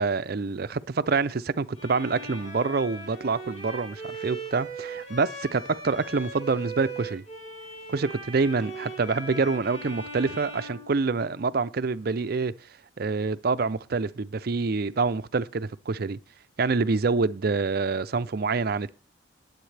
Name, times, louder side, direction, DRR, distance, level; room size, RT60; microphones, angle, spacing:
voice 1, 0.0-7.2 7.9-12.5 13.0-16.2 16.6-18.9, right 4 dB, 50° right, 0.5 m, -26 dB
Bowed string instrument, 1.8-11.6, right 2 dB, 35° left, 7.4 m, -39 dB
19.5 x 8.1 x 3.3 m
head